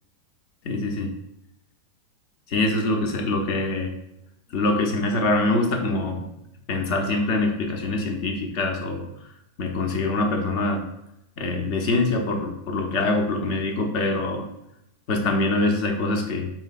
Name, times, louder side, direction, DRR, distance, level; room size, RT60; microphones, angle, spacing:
voice 1, 0.6-1.1 2.5-3.9 4.5-6.2 6.7-9.1 9.6-10.8 11.4-14.5 15.1-16.5, left 2 dB, 45° left, 3 dB, 0.7 m, -24 dB
4.1 x 3.1 x 2.4 m, 0.85 s
figure-of-eight pair, 90°, 0 cm